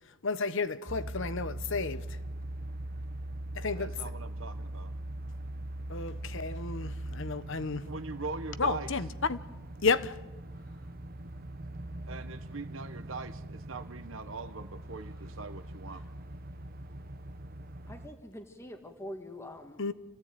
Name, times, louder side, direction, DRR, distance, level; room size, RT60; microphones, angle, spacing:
voice 1, 0.2-2.0 3.6-3.9 5.9-7.8 8.6-9.4 9.8-10.1 19.8-19.9, left 4 dB, 60° left, 1.1 m, -31 dB
sound 1, 0.9-18.1, right 1 dB, 45° right, 1.0 m, -41 dB
voice 2, 3.7-4.9 7.9-8.9 12.1-16.0, right 4 dB, 65° right, 1.2 m, -41 dB
voice 3, 17.9-19.8, left 1 dB, 15° left, 1.7 m, -44 dB
28.0 x 16.0 x 9.3 m
head